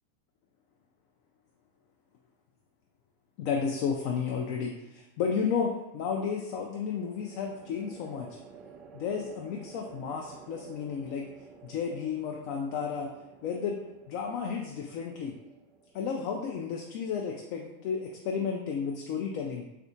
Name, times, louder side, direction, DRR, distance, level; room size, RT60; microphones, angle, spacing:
voice 1, 3.4-8.4 8.9-11.3 11.6-13.1 13.4-13.8 14.1-15.3 15.9-19.6, left 6 dB, 45° left, 1 dB, 0.3 m, -32 dB
sound 1, 3.6-4.2 6.7-18.1, right 5 dB, 30° right, 0.4 m, -53 dB
3.4 x 2.4 x 2.6 m, 0.94 s
figure-of-eight pair, 90°, 0 cm